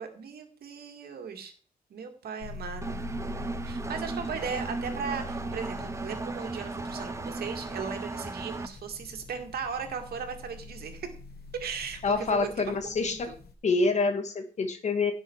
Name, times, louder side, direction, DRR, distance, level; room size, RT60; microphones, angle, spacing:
voice 1, 0.0-1.5 1.9-3.0 3.6-11.1 11.6-13.3, right 6 dB, 80° right, 5 dB, 2.2 m, -37 dB
sound 1, 2.4-13.5, left 3 dB, 85° left, 1.5 m, -44 dB
Engine, 2.8-8.7, right 3 dB, 20° right, 0.8 m, -36 dB
voice 2, 12.0-13.3 13.6-15.1, left 3 dB, 45° left, 8 dB, 1.7 m, -26 dB
16.5 x 6.2 x 4.7 m, 0.42 s
wide cardioid pair, 170°, 16 cm